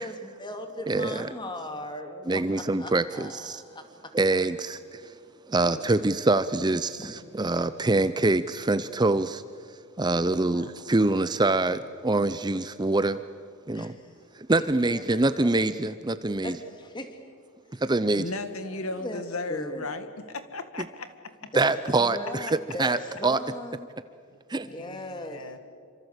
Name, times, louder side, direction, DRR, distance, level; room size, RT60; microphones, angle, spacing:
voice 1, 0.0-3.8 5.7-5.9 7.0-7.1 10.4-10.7 13.7-14.1 14.6-15.5 16.4-17.2 17.7-17.8 18.4-19.9 21.5-23.9 24.7-25.6, left 1 dB, 20° left, 6 dB, 2.7 m, -39 dB
voice 2, 0.9-1.3 2.3-3.6 4.1-5.1 5.5-9.4 10.0-13.2 13.7-13.9 14.5-16.5 17.8-18.3 21.5-23.4 24.5-24.7, right 2 dB, 20° right, 13 dB, 0.6 m, -25 dB
voice 3, 18.1-21.1 24.6-25.6, left 2 dB, 70° left, 9 dB, 2.0 m, -36 dB
28.0 x 26.0 x 8.2 m, 2.1 s
head